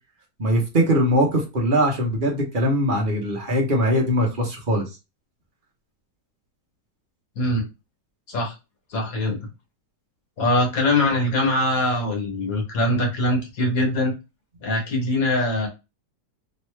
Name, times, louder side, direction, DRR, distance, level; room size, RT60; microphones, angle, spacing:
voice 1, 0.4-4.8, equal, 35° right, 0 dB, 1.0 m, -21 dB
voice 2, 7.4-7.7 8.3-8.5 8.9-9.5 10.4-14.1 14.6-15.7, left 1 dB, 55° left, 2 dB, 1.7 m, -22 dB
3.2 x 3.0 x 3.2 m, 0.26 s
omnidirectional pair, 1.9 m